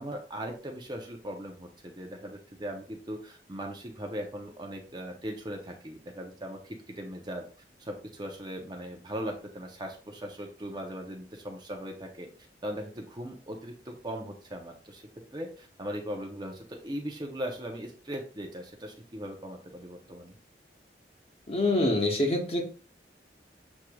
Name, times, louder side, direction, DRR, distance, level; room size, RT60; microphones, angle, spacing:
voice 1, 0.0-7.4 7.8-12.3 12.6-15.0 15.3-20.4, equal, 25° right, 2 dB, 0.7 m, -39 dB
voice 2, 21.5-22.6, left 1 dB, 35° left, 1 dB, 1.1 m, -25 dB
7.2 x 3.2 x 2.3 m, 0.39 s
head